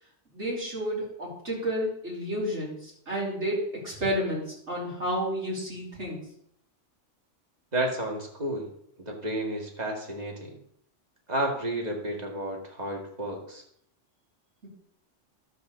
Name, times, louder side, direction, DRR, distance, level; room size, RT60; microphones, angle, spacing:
voice 1, 0.3-6.2, equal, 65° right, -5 dB, 4.4 m, -31 dB
voice 2, 7.7-8.7 9.0-10.6 11.3-13.6, right 1 dB, 35° right, 1 dB, 2.1 m, -31 dB
12.0 x 4.9 x 6.8 m, 0.70 s
omnidirectional pair, 1.3 m